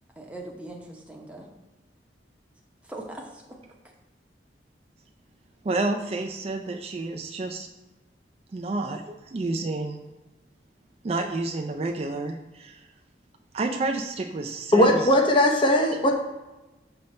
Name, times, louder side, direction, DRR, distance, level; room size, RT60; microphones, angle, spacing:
voice 1, 0.2-1.5 2.8-3.6, right 1 dB, 10° right, -1 dB, 0.8 m, -40 dB
voice 2, 5.6-7.7 8.5-10.0 11.0-12.9 13.5-15.1, right 2 dB, 35° right, 3 dB, 0.4 m, -30 dB
voice 3, 14.7-16.1, left 1 dB, 30° left, 2 dB, 0.8 m, -19 dB
5.6 x 3.3 x 5.2 m, 1.1 s
head